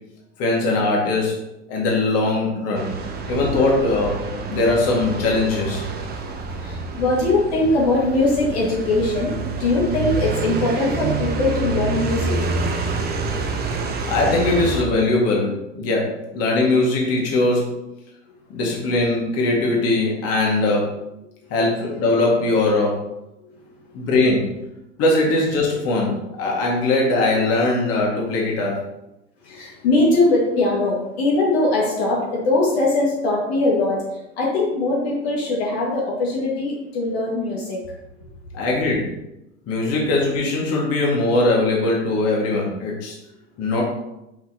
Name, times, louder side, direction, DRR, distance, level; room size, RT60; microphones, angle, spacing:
voice 1, 0.4-1.3 1.7-2.9 3.3-4.2 4.5-5.8 14.1-17.8 18.5-20.9 21.5-23.0 23.9-24.5 25.0-28.8 38.5-39.2 39.7-43.2 43.6-43.8, left 2 dB, 40° left, -3 dB, 2.0 m, -20 dB
sound 1, 2.7-14.9, right 3 dB, 25° right, 0.9 m, -27 dB
voice 2, 6.6-12.4 21.4-21.5 21.9-22.1 23.4-24.1 29.4-37.8, left 2 dB, 60° left, -4 dB, 2.0 m, -21 dB
5.8 x 5.8 x 2.9 m, 0.91 s
figure-of-eight pair, 85°, 36 cm